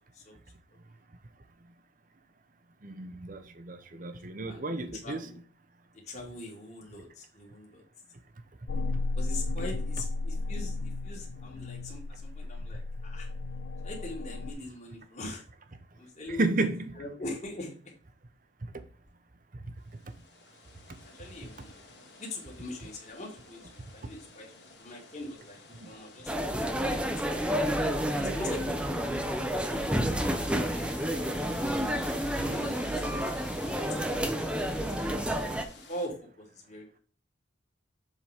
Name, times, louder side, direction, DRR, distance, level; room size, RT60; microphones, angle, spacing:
voice 1, 2.8-5.2 16.4-16.9 25.7-25.9 28.0-28.4 32.7-32.8, right 2 dB, 45° right, 0.9 m, -32 dB
voice 2, 5.0-5.4 5.9-7.8 9.2-13.3 13.8-15.4 16.0-16.6 16.9-17.9 21.0-21.8 22.2-24.5 24.8-27.8 28.2-29.5 30.0-32.0 32.5-33.2 33.9-35.1 35.5-35.6 35.9-37.0, left 1 dB, 35° left, 2.5 m, -43 dB
sound 1, 8.7-14.5, left 2 dB, 85° left, 0.5 m, -34 dB
sound 2, 19.8-36.1, left 4 dB, 60° left, 2.1 m, -52 dB
sound 3, 26.3-35.6, equal, 5° right, 0.7 m, -30 dB
7.4 x 4.0 x 5.0 m
head